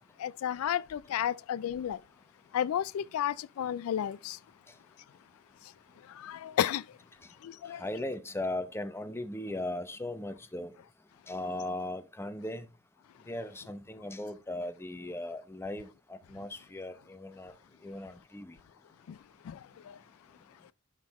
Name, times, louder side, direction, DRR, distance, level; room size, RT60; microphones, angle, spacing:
voice 1, 0.2-2.0 2.5-4.4 6.3-6.8 7.7-7.8, left 10 dB, 80° left, 0.3 m, -31 dB
voice 2, 7.7-10.7 11.3-12.7 13.3-17.5 17.8-18.6, left 1 dB, 10° left, 0.7 m, -38 dB
11.0 x 3.8 x 4.1 m
head